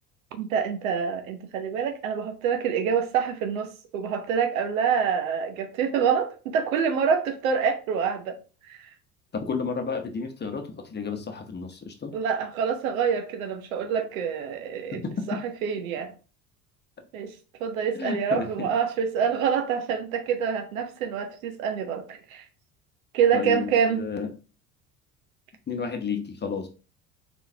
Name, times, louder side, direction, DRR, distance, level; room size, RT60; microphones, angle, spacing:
voice 1, 0.3-8.4 8.7-8.8 12.1-16.1 17.1-17.3 17.6-22.4 23.1-24.0, right 7 dB, 75° right, 0.9 m, -26 dB
voice 2, 9.3-12.1 14.9-15.4 17.9-18.7 23.3-24.4 25.7-26.7, left 5 dB, 25° left, 0.9 m, -32 dB
4.0 x 3.8 x 2.8 m
hypercardioid pair, 65°, 41 cm